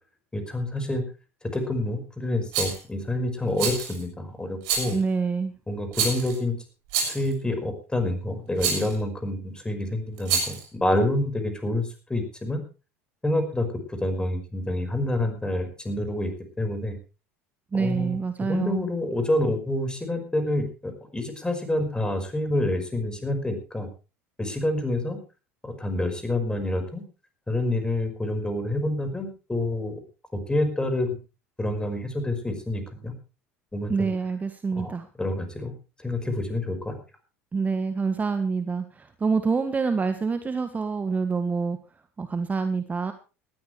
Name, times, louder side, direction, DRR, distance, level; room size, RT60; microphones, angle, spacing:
voice 1, 0.3-1.0 1.5-5.0 5.7-6.5 7.0-12.6 13.2-16.3 16.6-17.0 17.7-18.2 18.5-23.9 24.4-25.2 25.6-27.0 27.5-30.0 30.3-31.1 31.6-33.1 33.7-34.1 34.8-34.9 35.2-35.7 36.0-37.0, left 1 dB, 10° left, 7 dB, 5.3 m, -27 dB
Rattle, 2.5-2.8 3.6-4.0 4.6-5.0 5.9-6.4 6.9-7.3 8.6-8.9 10.2-10.6, right 6 dB, 60° right, 7.1 m, -27 dB
voice 2, 4.9-5.5 17.7-18.9 33.9-35.1 37.5-41.8 42.2-43.1, right 4 dB, 20° right, 9 dB, 1.5 m, -26 dB
19.0 x 13.5 x 3.4 m, 0.33 s
figure-of-eight pair, 70°, 7 cm